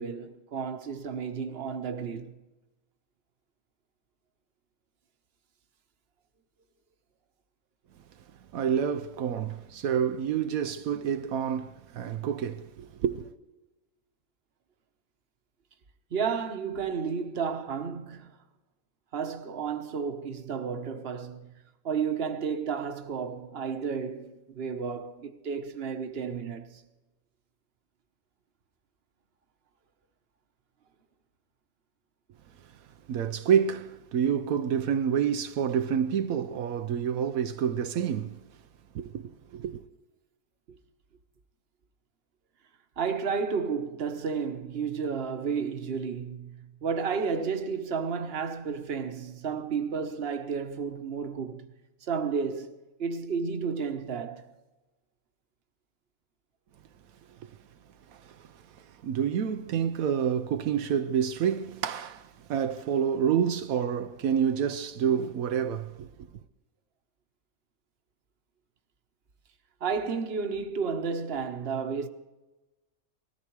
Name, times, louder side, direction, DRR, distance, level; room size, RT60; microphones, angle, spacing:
voice 1, 0.0-2.3 16.1-18.3 19.1-21.5 21.8-26.8 40.7-40.8 43.0-51.6 52.0-54.5 69.8-72.1, right 6 dB, 45° right, 1.2 m, -32 dB
voice 2, 8.5-13.3 33.1-38.4 38.9-39.8 57.4-57.5 58.1-66.1, right 8 dB, 80° right, 1.1 m, -28 dB
20.0 x 14.0 x 4.7 m
omnidirectional pair, 1.5 m